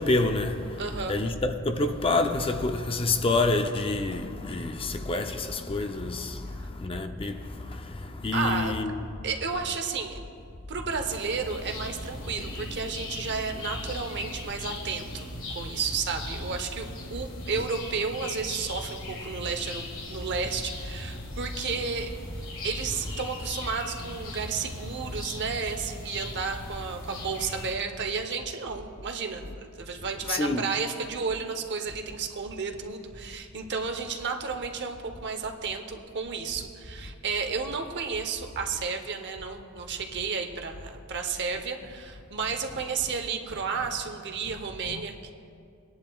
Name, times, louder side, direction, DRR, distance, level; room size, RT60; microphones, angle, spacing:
voice 1, 0.0-9.0 10.9-11.0 30.3-30.7 44.9-45.0, left 2 dB, 25° left, 0.5 m, -28 dB
voice 2, 0.8-1.2 6.6-6.7 8.3-8.8 9.2-10.2 10.7-15.3 15.5-22.1 22.6-45.3, right 5 dB, 55° right, 0.8 m, -32 dB
sound 1, 11.2-27.7, left 1 dB, 65° left, 1.8 m, -39 dB
sound 2, 11.7-14.5 15.8-17.5 18.5-18.6 19.0-19.1 20.4-23.5 24.1-26.7, left 1 dB, 85° left, 3.2 m, -45 dB
21.0 x 10.5 x 2.3 m
head